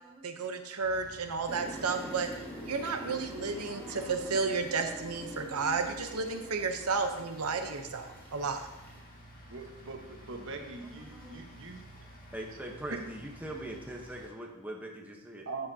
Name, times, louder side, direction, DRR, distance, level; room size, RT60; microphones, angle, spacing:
voice 1, 0.2-2.3 2.7-8.6, right 4 dB, 80° right, 5 dB, 0.9 m, -32 dB
sound 1, 0.8-14.3, equal, 40° left, 1.8 m, -52 dB
sound 2, 1.5-9.0, equal, 10° left, 2.9 m, -46 dB
voice 2, 3.7-6.1 7.2-7.3 7.6-7.9 10.8-11.4 12.3-15.5, right 1 dB, 5° right, 0 dB, 1.0 m, -44 dB
voice 3, 9.5-11.8 12.5-12.6 12.9-13.0 15.5-15.7, right 3 dB, 60° right, 3 dB, 1.3 m, -42 dB
13.5 x 7.8 x 2.8 m, 1.0 s
head